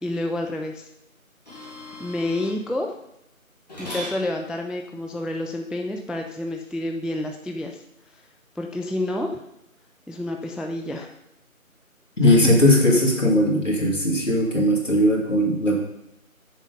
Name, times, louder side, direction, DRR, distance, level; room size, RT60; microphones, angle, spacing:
voice 1, 0.0-0.9 2.0-2.9 3.8-7.8 8.6-9.4 10.1-11.1 12.3-12.4, left 1 dB, ahead, 3 dB, 0.4 m, -29 dB
sound 1, 1.5-2.6 3.7-4.2 6.6-6.7, equal, 30° left, 2.3 m, -37 dB
voice 2, 12.2-15.8, left 1 dB, 60° left, -1 dB, 2.5 m, -19 dB
7.2 x 6.9 x 5.2 m, 0.82 s
figure-of-eight pair, 175°, 43 cm